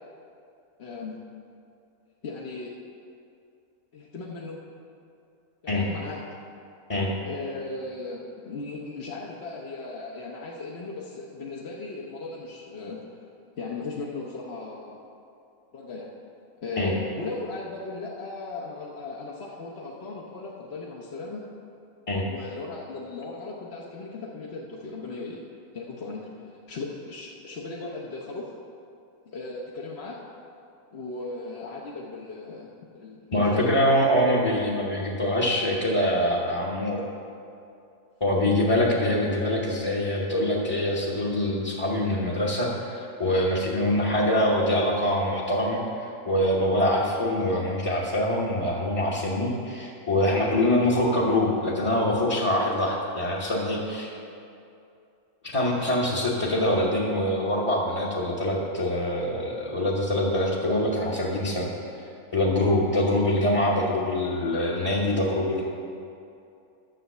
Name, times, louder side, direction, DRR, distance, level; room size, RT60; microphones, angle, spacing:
voice 1, 0.8-1.2 2.2-2.7 3.9-4.6 5.6-6.2 7.3-13.0 13.6-15.0 15.7-16.1 16.6-21.4 22.3-25.4 25.7-28.5 29.3-30.2 30.9-32.7 32.9-33.8, left 3 dB, 50° left, -3 dB, 1.1 m, -37 dB
voice 2, 33.3-37.0 38.2-54.1 55.5-61.7 62.3-65.6, left 1 dB, 25° left, -5 dB, 1.1 m, -24 dB
10.5 x 7.1 x 6.6 m, 2.6 s
omnidirectional pair, 1.6 m